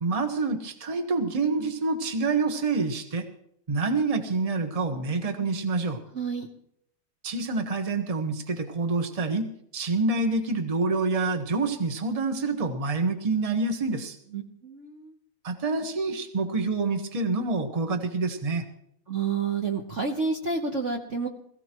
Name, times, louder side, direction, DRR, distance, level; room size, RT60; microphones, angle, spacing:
voice 1, 0.0-3.3 3.7-6.0 7.2-9.5 9.7-14.2 15.4-18.6, right 3 dB, 20° right, 5 dB, 1.2 m, -27 dB
voice 2, 6.1-6.5 14.3-15.2 19.1-21.3, right 4 dB, 40° right, 1 dB, 1.2 m, -29 dB
21.0 x 15.5 x 3.1 m, 0.71 s
omnidirectional pair, 2.3 m